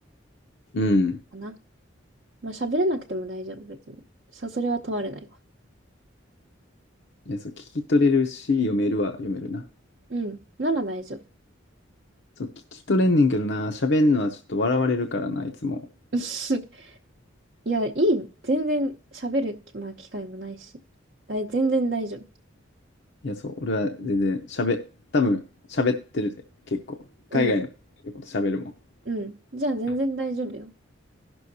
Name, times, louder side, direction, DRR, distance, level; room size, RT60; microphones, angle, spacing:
voice 1, 0.7-1.2 7.3-9.6 12.4-15.8 23.2-24.8 25.1-25.4 25.7-26.3 26.7-27.0 27.3-27.7 28.2-28.7, left 2 dB, 60° left, 0.7 m, -24 dB
voice 2, 2.4-4.0 4.3-5.3 10.1-11.2 16.1-17.0 17.7-20.7 21.3-22.2 27.3-27.6 29.1-30.7, right 1 dB, 50° right, 0.7 m, -28 dB
17.0 x 6.2 x 2.7 m
head